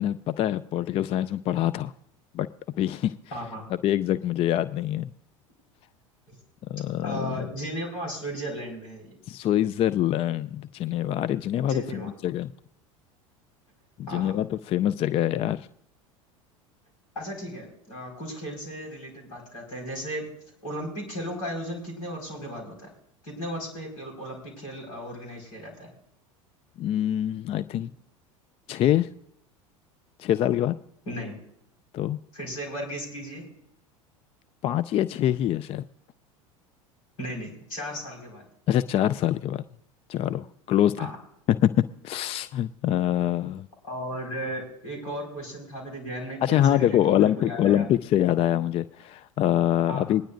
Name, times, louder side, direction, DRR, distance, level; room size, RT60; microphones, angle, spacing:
voice 1, 0.0-1.9 2.3-2.5 2.8-3.1 3.8-5.1 6.7-7.5 9.3-12.5 14.0-15.7 26.8-27.9 28.7-29.1 30.2-30.8 31.9-32.2 34.6-35.8 38.7-39.6 40.1-41.1 41.5-43.7 46.4-50.2, left 11 dB, 35° left, 14 dB, 0.3 m, -25 dB
voice 2, 3.3-3.7 6.3-6.4 7.0-9.2 11.7-12.1 14.1-14.3 17.1-20.3 20.6-22.9 23.2-25.9 31.1-31.3 32.3-33.4 37.2-38.4 41.0-41.2 43.9-47.9 49.9-50.2, equal, 75° left, 1 dB, 4.8 m, -35 dB
21.0 x 10.0 x 2.5 m, 0.73 s
hypercardioid pair, 80°, 17 cm